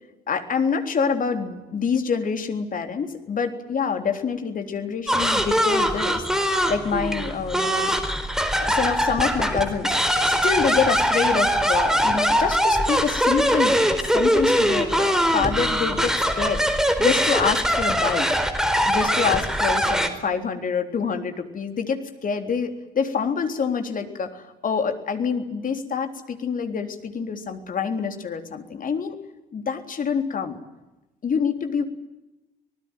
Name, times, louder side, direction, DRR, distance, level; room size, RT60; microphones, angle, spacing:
voice 1, 0.3-6.2 6.7-7.9 8.6-9.9 10.2-13.8 14.1-16.7 17.0-18.3 18.9-29.2 29.5-30.6 31.2-31.8, left 6 dB, 40° left, 6 dB, 3.7 m, -26 dB
sound 1, 5.1-20.1, equal, ahead, 4.3 m, -22 dB
26.0 x 19.5 x 9.3 m, 0.99 s
figure-of-eight pair, 50°, 20 cm